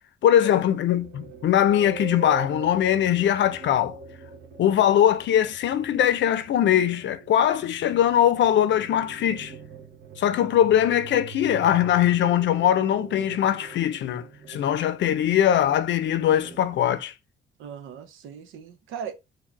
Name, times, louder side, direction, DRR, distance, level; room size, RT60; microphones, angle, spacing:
voice 1, 0.2-4.0 4.6-9.5 10.2-17.1, left 10 dB, 65° left, 0.5 m, -21 dB
sound 1, 1.0-17.0, right 7 dB, 60° right, 1.2 m, -43 dB
voice 2, 17.6-19.1, right 7 dB, 85° right, 0.8 m, -38 dB
4.6 x 2.2 x 4.4 m
cardioid pair, 90°, 20 cm